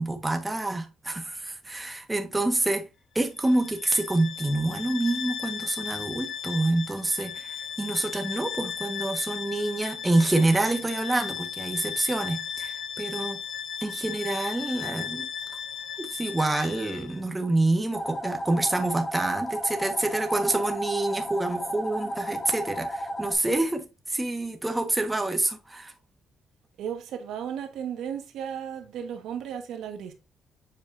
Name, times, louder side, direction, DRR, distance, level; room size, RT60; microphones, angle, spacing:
voice 1, 0.0-2.9 3.1-13.4 13.8-15.3 16.0-25.9, right 2 dB, 15° right, 1.3 m, -27 dB
Bowed string instrument, 3.3-17.2, left 8 dB, 55° left, 0.7 m, -36 dB
sound 1, 17.9-23.4, equal, 40° left, 3.2 m, -33 dB
voice 2, 26.8-30.1, right 8 dB, 80° right, 1.4 m, -35 dB
7.7 x 4.7 x 2.6 m
cardioid pair, 90°, 0 cm